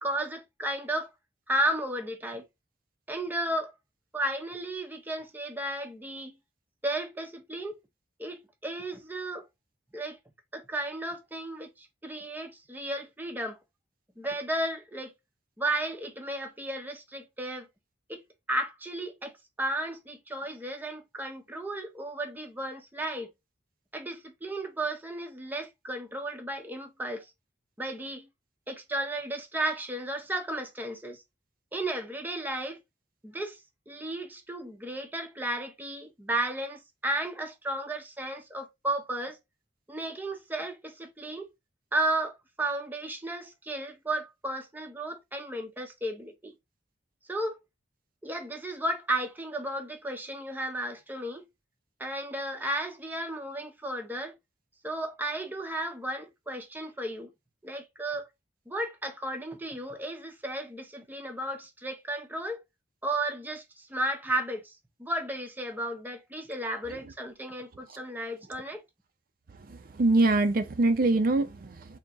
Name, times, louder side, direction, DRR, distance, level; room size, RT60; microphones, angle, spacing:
voice 1, 0.0-1.1 1.5-2.4 3.1-3.7 4.1-6.4 6.8-7.8 8.2-9.5 9.9-10.2 10.5-13.6 14.2-15.1 15.6-17.7 18.1-18.2 18.5-23.3 23.9-27.3 27.8-28.3 28.7-31.2 31.7-32.8 33.2-33.6 33.9-39.4 39.9-41.5 41.9-46.5 47.3-47.6 48.2-51.5 52.0-54.3 54.8-57.3 57.6-58.3 58.7-62.6 63.0-64.7 65.0-68.8, right 1 dB, 10° right, 0.6 m, -34 dB
voice 2, 70.0-72.0, right 2 dB, 50° right, 0.5 m, -24 dB
3.9 x 2.8 x 3.4 m
head